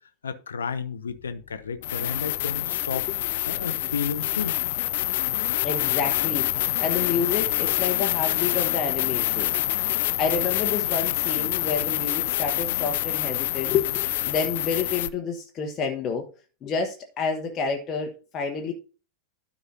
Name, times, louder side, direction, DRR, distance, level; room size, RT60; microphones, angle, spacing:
voice 1, 0.2-3.1 3.4-4.6 12.7-12.8, left 6 dB, 70° left, 0.8 m, -32 dB
sound 1, 1.1-1.2 1.8-15.1, left 16 dB, 55° left, 0.4 m, -26 dB
voice 2, 5.6-9.5 9.9-16.3 16.6-18.7, left 5 dB, 30° left, 1.1 m, -29 dB
12.5 x 5.2 x 2.7 m
figure-of-eight pair, 90°, 0 cm